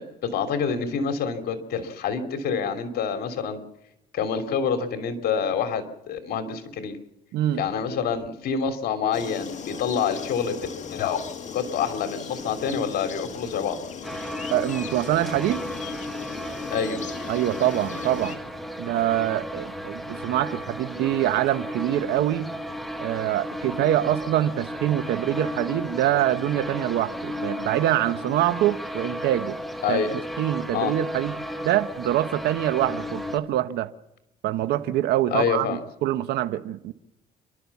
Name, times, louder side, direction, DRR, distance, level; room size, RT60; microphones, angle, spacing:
voice 1, 0.0-3.6 4.1-7.0 7.5-10.6 10.9-11.2 11.5-13.8 16.7-17.0 29.8-30.1 30.7-30.9 35.3-35.8, left 6 dB, 65° left, 3.1 m, -27 dB
sound 1, 9.1-18.4, left 7 dB, 45° left, 2.2 m, -37 dB
sound 2, 14.0-33.4, equal, ahead, 1.7 m, -34 dB
voice 2, 14.5-15.6 17.3-18.4 18.8-22.5 23.0-29.6 29.9-30.0 30.4-31.3 31.6-33.9 34.4-36.9, right 13 dB, 75° right, 1.2 m, -25 dB
29.0 x 12.5 x 7.3 m
cardioid pair, 110°, 17 cm